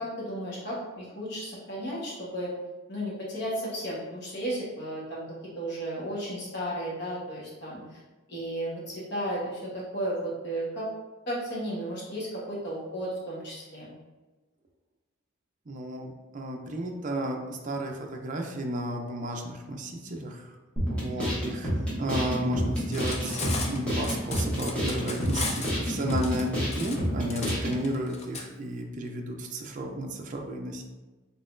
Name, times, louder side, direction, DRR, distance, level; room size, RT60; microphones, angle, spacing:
voice 1, 0.0-2.5 2.9-8.0 8.3-10.9 11.3-13.9 21.2-21.5, right 1 dB, 55° left, -5 dB, 1.2 m, -34 dB
voice 2, 15.7-20.6 20.9-21.7 22.0-30.8, right 1 dB, 40° right, 2 dB, 0.4 m, -33 dB
sound 1, 20.8-27.8, equal, 5° left, 1.2 m, -29 dB
Cutlery silverware, 22.8-28.4, left 4 dB, 30° left, 0.5 m, -36 dB
3.9 x 3.6 x 2.5 m, 1.2 s
head